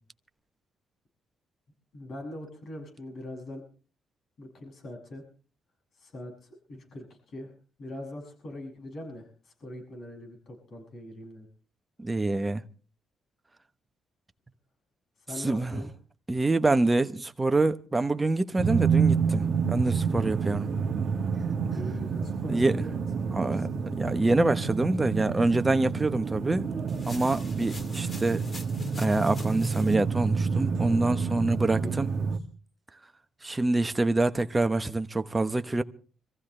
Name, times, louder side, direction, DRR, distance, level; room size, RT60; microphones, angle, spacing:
voice 1, 1.9-3.6 4.4-5.2 6.0-6.3 6.7-7.5 7.8-11.5 15.3-15.9 21.7-23.9 31.8-31.9 32.2-32.3, left 1 dB, 55° left, 7.4 m, -42 dB
voice 2, 12.0-12.6 15.4-15.8 16.3-20.7 22.5-22.8 23.3-26.7 27.1-28.4 29.0-32.1 33.4-35.8, right 2 dB, 20° right, 1.0 m, -26 dB
sound 1, 18.6-32.4, right 5 dB, 55° right, 1.4 m, -28 dB
sound 2, 26.9-30.0, left 3 dB, 30° left, 2.2 m, -46 dB
25.5 x 15.0 x 3.3 m
cardioid pair, 90°, 0 cm